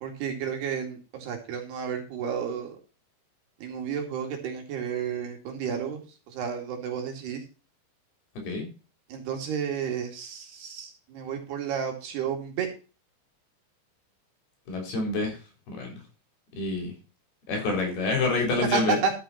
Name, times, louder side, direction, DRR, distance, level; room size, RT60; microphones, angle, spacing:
voice 1, 0.0-2.8 3.6-6.0 6.3-7.4 9.1-12.7 18.7-19.1, right 6 dB, 65° right, 3 dB, 4.0 m, -31 dB
voice 2, 8.4-8.7 14.7-15.4 15.7-16.0 16.5-16.9 17.5-19.0, left 3 dB, 55° left, 2 dB, 5.5 m, -27 dB
12.5 x 7.4 x 4.2 m, 0.33 s
omnidirectional pair, 5.3 m